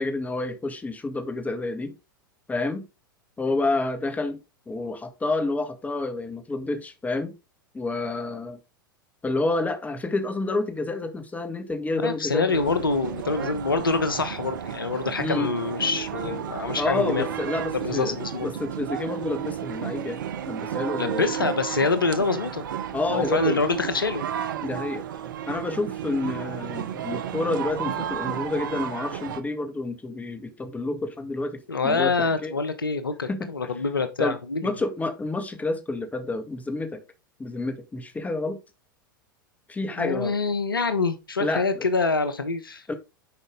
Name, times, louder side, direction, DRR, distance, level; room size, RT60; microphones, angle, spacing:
voice 1, 0.0-1.9 2.5-2.9 3.4-4.4 4.7-7.3 7.7-8.6 9.2-12.6 15.2-15.5 16.8-21.3 22.9-23.6 24.6-25.0 25.5-32.5 33.2-33.7 34.2-37.0 37.4-38.6 39.7-40.4 41.4-41.9 42.9-43.0, left 2 dB, 15° left, 1.9 m, -29 dB
voice 2, 12.0-17.2 17.7-18.5 21.0-22.6 23.1-24.2 31.7-34.7 40.0-42.8, left 4 dB, 85° left, 1.2 m, -26 dB
sound 1, 12.5-29.4, right 9 dB, 70° right, 1.0 m, -32 dB
10.0 x 5.3 x 3.8 m
figure-of-eight pair, 90°, 11 cm